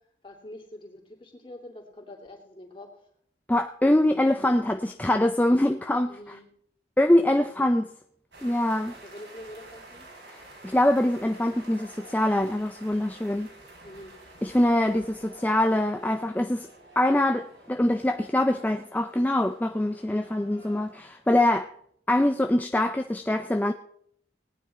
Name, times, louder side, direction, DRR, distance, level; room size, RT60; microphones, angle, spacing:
voice 1, 0.2-2.9 6.1-6.5 9.0-10.1 13.8-14.1, left 1 dB, 30° left, 2.7 m, -45 dB
voice 2, 3.5-6.2 7.0-7.9 8.4-8.9 10.3-13.5 14.4-16.7 17.0-21.7 22.1-23.7, left 1 dB, 10° left, 0.4 m, -24 dB
sound 1, 8.3-21.3, right 2 dB, 90° right, 3.6 m, -50 dB
18.5 x 9.5 x 4.2 m
head